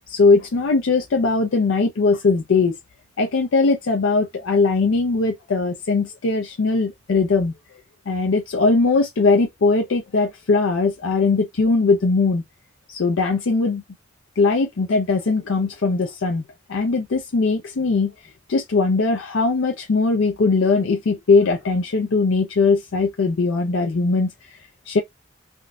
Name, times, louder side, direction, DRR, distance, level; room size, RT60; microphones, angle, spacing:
voice 1, 0.1-2.8 3.2-7.5 8.1-12.4 12.9-13.8 14.4-16.4 16.7-18.1 18.5-24.6 24.9-25.0, left 3 dB, 90° left, 0.5 m, -20 dB
3.6 x 2.5 x 2.2 m
head